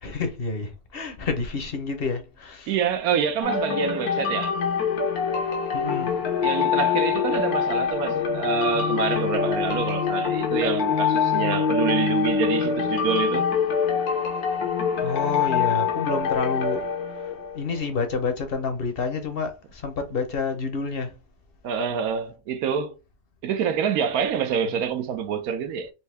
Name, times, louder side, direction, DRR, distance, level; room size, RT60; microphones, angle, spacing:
voice 1, 0.0-2.7 5.7-6.1 15.0-16.9 17.1-21.1, left 4 dB, 45° left, 0.9 m, -29 dB
voice 2, 2.7-4.5 6.4-13.5 21.6-23.0 23.4-25.9, right 7 dB, 80° right, 1.1 m, -26 dB
sound 1, 3.4-17.9, left 6 dB, 75° left, 1.5 m, -24 dB
4.3 x 2.7 x 3.3 m
omnidirectional pair, 1.6 m